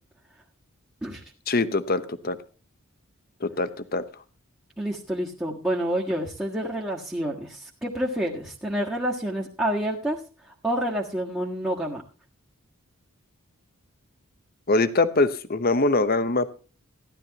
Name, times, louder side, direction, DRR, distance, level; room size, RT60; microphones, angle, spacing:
voice 1, 1.5-2.4 3.4-4.0 14.7-16.5, left 3 dB, 45° left, 13 dB, 0.9 m, -23 dB
voice 2, 4.8-10.2 10.6-12.0, right 1 dB, 10° right, -6 dB, 1.6 m, -28 dB
15.0 x 12.0 x 2.9 m, 0.35 s
head